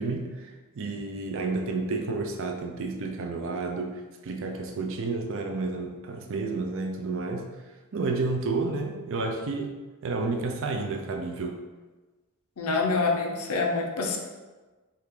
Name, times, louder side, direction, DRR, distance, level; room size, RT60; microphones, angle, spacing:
voice 1, 0.0-7.5 7.9-9.7 10.0-11.6, right 3 dB, 60° right, 3 dB, 0.4 m, -31 dB
voice 2, 12.6-14.2, left 3 dB, 80° left, 2 dB, 0.6 m, -26 dB
4.5 x 2.8 x 3.6 m, 1.3 s
head